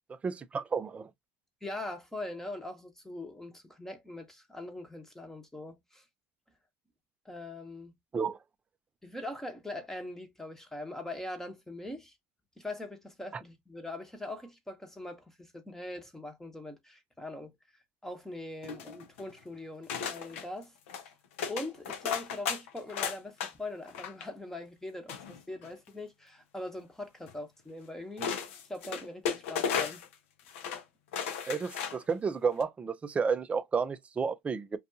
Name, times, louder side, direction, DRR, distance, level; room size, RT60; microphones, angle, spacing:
voice 1, 0.2-1.1 8.1-8.4 31.5-34.8, right 5 dB, 20° right, 0.4 m, -31 dB
voice 2, 1.6-6.0 7.2-8.0 9.0-12.1 12.6-17.5 18.0-21.1 21.5-28.3 28.7-30.0, left 2 dB, 5° left, 0.9 m, -42 dB
sound 1, 18.6-19.3 19.9-20.4 20.9-21.1 21.4-23.5 23.8-24.3 25.1-25.9 27.3-27.4 28.2-30.1 30.5-30.8 31.1-32.1 32.5-32.6, left 7 dB, 90° left, 0.6 m, -35 dB
2.6 x 2.3 x 2.6 m
supercardioid pair, 120°, 7 cm